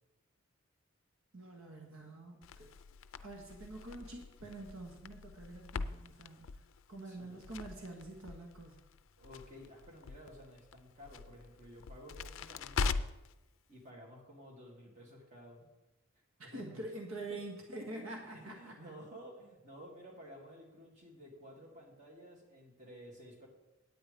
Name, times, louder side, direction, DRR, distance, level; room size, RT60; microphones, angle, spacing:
voice 1, 1.3-2.7 3.2-6.6 6.9-8.8 16.4-18.7, right 2 dB, 75° right, 1 dB, 1.5 m, -46 dB
Crackle, 2.4-13.3, left 4 dB, 70° left, 0.4 m, -42 dB
voice 2, 7.0-7.4 9.2-13.0 13.7-15.7 16.4-16.8 18.3-23.5, equal, 35° right, -2 dB, 2.5 m, -53 dB
9.1 x 8.9 x 5.1 m, 1.0 s
head